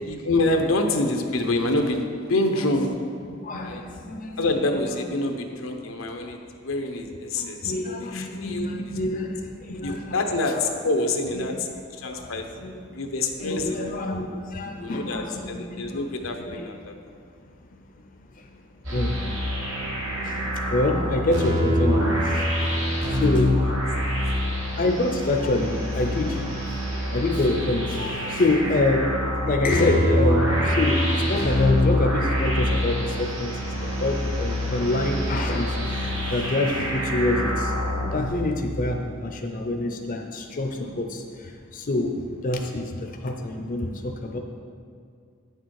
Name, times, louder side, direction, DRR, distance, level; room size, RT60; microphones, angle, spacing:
voice 1, 0.0-2.9 3.6-3.8 4.4-8.8 9.8-11.7 12.0-12.4 12.9-13.8 14.1-14.2 14.8-16.9 23.0-23.5 24.2-24.4 28.1-28.2 31.8-31.9 34.0-34.1, left 2 dB, 85° left, 4 dB, 0.9 m, -27 dB
voice 2, 3.4-4.4 4.9-5.0 7.4-10.2 11.3-11.6 12.0-13.0 13.4-16.0 16.4-16.7 17.7-18.0 18.3-18.6 18.9-19.2 20.2-22.5 23.0-23.6 24.3-37.7 38.1-42.2 42.4-44.4, left 2 dB, 45° left, 3 dB, 0.6 m, -27 dB
sound 1, 18.8-38.3, equal, 80° right, 2.2 m, -25 dB
8.8 x 6.7 x 4.7 m, 2.3 s
head